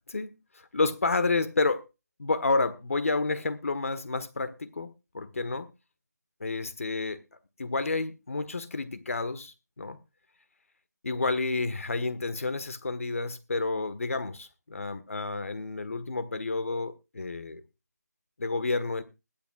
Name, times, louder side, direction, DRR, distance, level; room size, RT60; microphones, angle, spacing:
voice 1, 0.1-1.8 2.2-5.7 6.4-7.2 7.6-10.0 11.0-17.6 18.4-19.0, left 3 dB, 50° left, 1.4 m, -30 dB
21.0 x 10.5 x 2.4 m
figure-of-eight pair, 170°, 9 cm